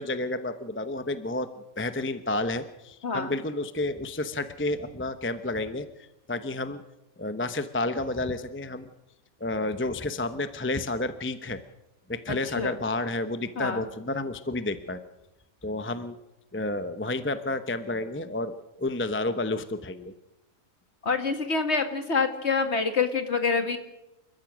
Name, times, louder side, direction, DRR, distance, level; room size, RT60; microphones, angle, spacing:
voice 1, 0.0-1.5 1.8-6.8 7.2-8.9 9.4-11.6 12.1-15.0 15.6-16.2 16.5-20.1, left 2 dB, 10° left, 10 dB, 0.8 m, -30 dB
voice 2, 3.0-3.3 12.6-12.8 13.6-13.8 21.0-23.8, left 4 dB, 50° left, 8 dB, 2.2 m, -26 dB
29.0 x 14.5 x 6.2 m, 0.94 s
omnidirectional pair, 1.5 m